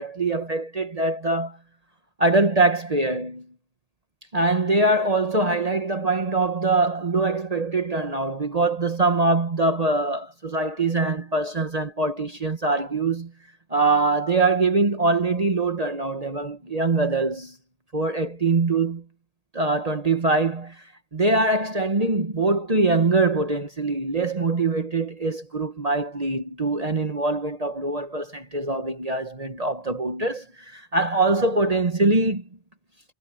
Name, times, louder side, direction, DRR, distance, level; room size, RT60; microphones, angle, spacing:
voice 1, 0.0-1.6 2.2-3.5 4.3-13.3 13.7-17.5 17.9-19.0 19.5-20.8 21.1-32.4, right 3 dB, 35° right, 1.4 m, -23 dB
omnidirectional pair, 1.1 m